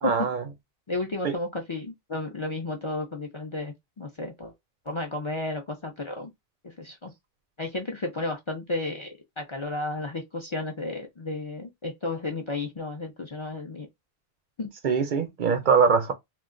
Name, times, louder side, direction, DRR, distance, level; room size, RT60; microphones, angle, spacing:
voice 1, 0.0-0.4 1.2-1.4 14.8-16.1, right 6 dB, 60° right, 0.6 m, -22 dB
voice 2, 0.9-4.5 4.9-6.3 6.6-7.1 7.6-13.9 14.6-14.7, left 2 dB, 40° left, 0.4 m, -33 dB
2.3 x 2.2 x 3.7 m
omnidirectional pair, 1.0 m